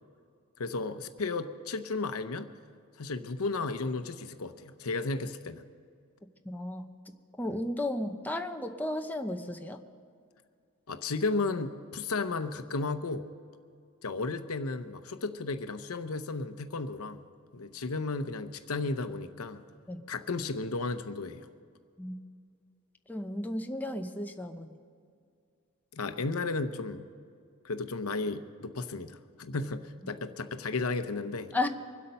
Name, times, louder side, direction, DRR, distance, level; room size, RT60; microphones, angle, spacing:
voice 1, 0.6-2.5 3.0-5.6 10.9-13.2 14.0-17.2 17.5-19.6 20.1-21.5 25.9-27.1 27.6-31.7, left 3 dB, 80° left, 10 dB, 0.8 m, -34 dB
voice 2, 6.4-6.9 7.4-9.8 19.9-20.0 22.0-22.2 23.1-24.8 30.0-30.3 31.5-31.7, left 1 dB, 10° left, 4 dB, 0.8 m, -34 dB
24.5 x 8.4 x 5.5 m, 2.3 s
head